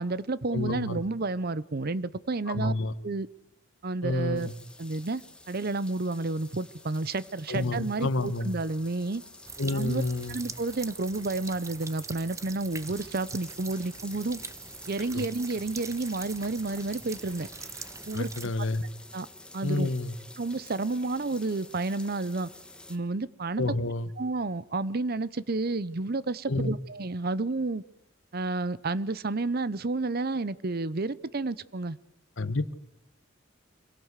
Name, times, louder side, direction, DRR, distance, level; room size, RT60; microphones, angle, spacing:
voice 1, 0.0-2.7 3.0-3.3 3.8-4.5 4.8-9.2 9.7-10.0 10.3-14.4 14.9-17.5 18.1-18.3 18.6-18.7 19.1-19.3 19.5-19.9 20.4-22.5 22.9-23.6 24.2-27.8 28.3-32.0, right 3 dB, 50° right, 18 dB, 0.8 m, -30 dB
voice 2, 0.5-1.0 2.5-2.9 4.0-4.5 7.5-8.5 9.6-10.4 15.1-15.3 18.1-18.8 19.6-20.1 23.6-24.1 26.5-26.7 32.4-32.7, left 2 dB, 70° left, 13 dB, 1.2 m, -29 dB
sound 1, 4.3-23.0, left 2 dB, 5° left, 1.5 m, -50 dB
sound 2, 9.4-18.5, right 4 dB, 15° right, 0.8 m, -43 dB
25.5 x 17.0 x 8.2 m, 0.82 s
head